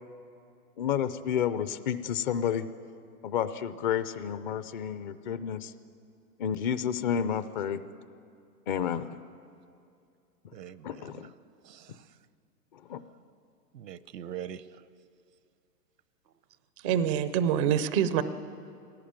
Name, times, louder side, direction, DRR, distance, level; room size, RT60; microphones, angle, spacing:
voice 1, 0.8-2.7 3.2-5.7 6.4-7.8 8.7-9.2 10.8-11.3 12.7-13.0, left 8 dB, 30° left, 13 dB, 0.6 m, -30 dB
voice 2, 10.5-11.3 11.6-12.0 13.7-14.6, right 10 dB, 85° right, 16 dB, 1.0 m, -42 dB
voice 3, 16.8-18.2, right 9 dB, 20° right, 13 dB, 0.4 m, -25 dB
20.0 x 17.0 x 8.9 m, 2.5 s
hypercardioid pair, 140°, 48 cm